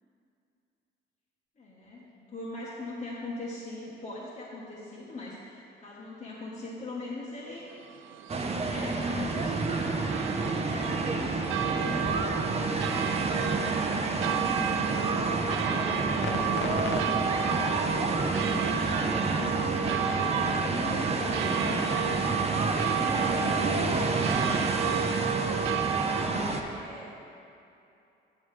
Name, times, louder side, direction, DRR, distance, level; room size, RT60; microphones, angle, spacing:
voice 1, 1.6-7.7 8.2-12.2 14.1-16.6 17.6-21.7 22.6-24.4 25.4-26.1 26.5-27.2, left 2 dB, 40° left, -6 dB, 1.3 m, -42 dB
sound 1, 7.7-26.2, right 7 dB, 85° right, 0.5 m, -32 dB
sound 2, 8.3-26.6, right 3 dB, 30° right, 0.7 m, -29 dB
sound 3, 11.5-17.0, left 4 dB, 65° left, 0.8 m, -41 dB
8.5 x 7.2 x 3.2 m, 2.7 s
cardioid pair, 90°, 20 cm